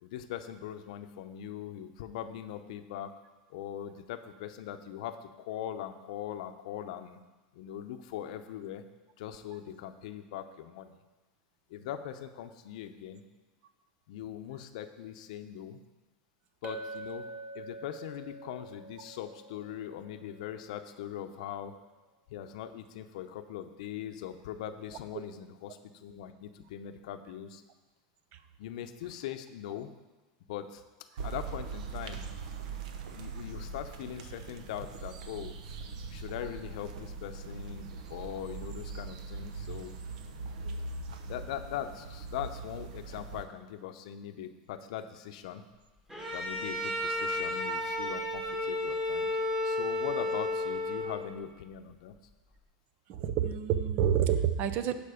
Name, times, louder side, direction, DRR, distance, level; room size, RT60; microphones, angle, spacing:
voice 1, 0.0-3.1 3.5-7.2 7.6-8.8 9.2-11.0 11.7-13.2 14.1-15.8 16.6-17.3 17.5-21.8 22.3-27.6 28.6-29.9 30.5-30.8 31.2-32.2 33.1-35.5 36.1-39.9 41.3-45.6 46.3-49.3 49.6-52.1, left 10 dB, 75° left, 9 dB, 0.7 m, -41 dB
Chink clink, 16.6-21.1, right 3 dB, 30° right, 1.1 m, -46 dB
sound 1, 31.2-43.4, right 4 dB, 80° right, 0.9 m, -41 dB
Bowed string instrument, 46.1-51.4, left 1 dB, 10° right, 1.8 m, -32 dB
voice 2, 53.1-54.9, right 9 dB, 50° right, 11 dB, 0.7 m, -28 dB
11.0 x 5.1 x 5.0 m, 1.2 s
supercardioid pair, 120°, 4 cm